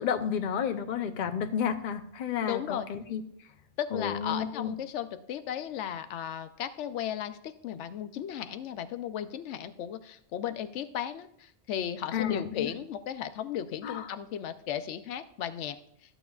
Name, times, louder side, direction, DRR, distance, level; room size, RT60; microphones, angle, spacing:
voice 1, 0.0-3.2 3.9-4.7 12.1-12.7 13.8-14.1, left 7 dB, 50° left, 7 dB, 0.7 m, -31 dB
voice 2, 2.5-2.9 3.8-15.8, left 10 dB, 90° left, 11 dB, 0.9 m, -35 dB
13.0 x 9.0 x 2.3 m, 0.70 s
omnidirectional pair, 1.2 m